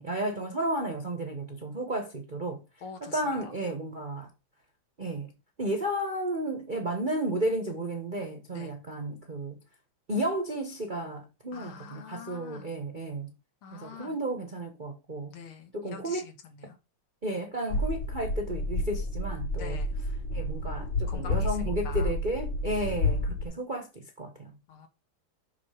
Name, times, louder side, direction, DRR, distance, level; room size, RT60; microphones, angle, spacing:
voice 1, 0.0-2.6 3.0-4.3 5.0-5.3 5.6-9.6 10.1-13.3 13.7-15.3 15.7-16.3 17.2-19.8 20.3-24.5, right 1 dB, 35° right, 0.9 m, -33 dB
voice 2, 2.8-3.5 8.5-8.7 11.5-12.7 13.6-14.2 15.3-16.8 19.6-19.9 21.1-22.1 24.7-24.9, left 5 dB, 75° left, 2.2 m, -45 dB
sound 1, 17.7-23.5, left 2 dB, 60° left, 3.0 m, -30 dB
6.1 x 6.0 x 4.9 m
omnidirectional pair, 2.4 m